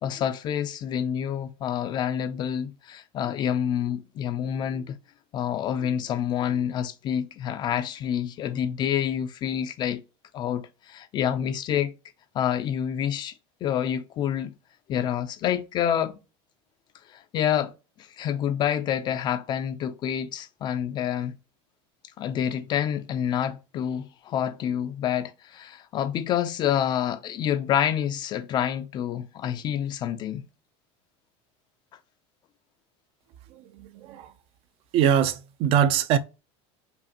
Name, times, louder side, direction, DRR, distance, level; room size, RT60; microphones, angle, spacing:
voice 1, 0.0-5.0 5.3-10.0 10.3-11.9 12.3-13.3 13.6-14.5 14.9-16.2 17.1-17.7 18.0-21.3 22.2-30.4, left 9 dB, 30° left, 0.4 m, -28 dB
voice 2, 33.5-34.3 34.9-36.2, right 9 dB, 40° right, 0.4 m, -23 dB
5.1 x 2.5 x 2.8 m
cardioid pair, 155°, 15 cm